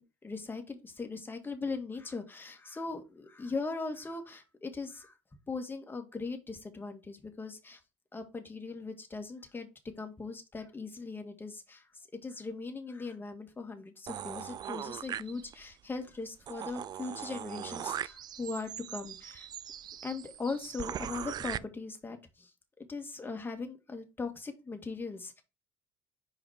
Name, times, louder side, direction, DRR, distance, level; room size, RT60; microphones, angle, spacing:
voice 1, 0.0-5.1 5.5-7.8 8.1-9.7 10.0-11.8 12.2-19.5 20.0-22.5 22.9-25.4, left 4 dB, 25° left, 5 dB, 1.9 m, -39 dB
sound 1, 14.1-15.7 16.1-16.2 16.5-21.6, right 10 dB, 50° right, 0.4 m, -40 dB
5.2 x 5.0 x 4.9 m, 0.28 s
supercardioid pair, 75°, 9 cm